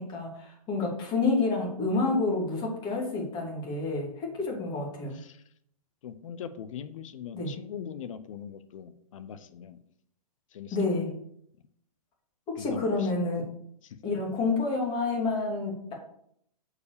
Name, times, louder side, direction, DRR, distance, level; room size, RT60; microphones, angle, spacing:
voice 1, 0.0-5.2 7.3-7.5 10.7-11.1 12.5-13.5 14.0-15.9, left 3 dB, 25° left, -1 dB, 2.7 m, -29 dB
voice 2, 6.0-9.8 10.5-10.8 12.6-13.1 13.8-14.0, left 8 dB, 55° left, 12 dB, 0.8 m, -41 dB
6.6 x 4.9 x 6.7 m, 0.70 s
hypercardioid pair, 140°, 19 cm